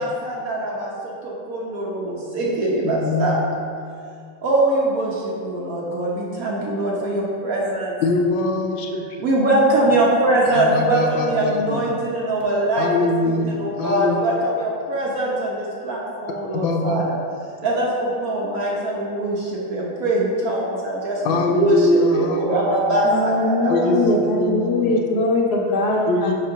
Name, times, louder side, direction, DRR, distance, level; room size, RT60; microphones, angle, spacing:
voice 1, 0.0-3.4 4.4-8.0 9.2-12.9 13.4-17.2 17.6-23.9, right 1 dB, 55° right, -4 dB, 1.1 m, -22 dB
voice 2, 2.7-3.6 8.0-9.3 10.5-11.9 12.8-14.2 16.6-17.0 21.2-23.0 23.7-25.0 26.1-26.5, left 2 dB, 85° left, 3 dB, 1.4 m, -23 dB
voice 3, 23.0-26.5, left 2 dB, 65° left, -1 dB, 1.1 m, -21 dB
7.4 x 3.0 x 5.6 m, 2.3 s
omnidirectional pair, 2.1 m